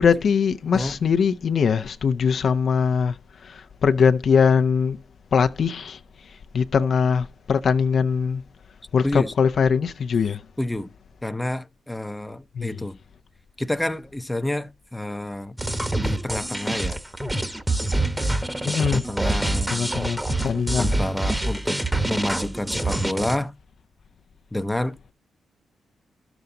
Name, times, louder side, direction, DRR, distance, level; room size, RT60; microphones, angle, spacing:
voice 1, 0.0-5.0 5.3-8.4 8.9-10.4 12.5-12.8 18.7-19.0 19.7-21.0, left 6 dB, 60° left, 0.7 m, -22 dB
voice 2, 9.0-9.3 10.6-10.9 11.2-13.0 13.6-15.6 15.9-17.0 18.6-20.0 20.8-21.8 22.1-23.5 24.5-25.1, left 1 dB, 10° left, 0.7 m, -29 dB
sound 1, 15.6-23.4, right 2 dB, 10° right, 1.2 m, -26 dB
12.0 x 7.1 x 3.9 m
cardioid pair, 80°, 0 cm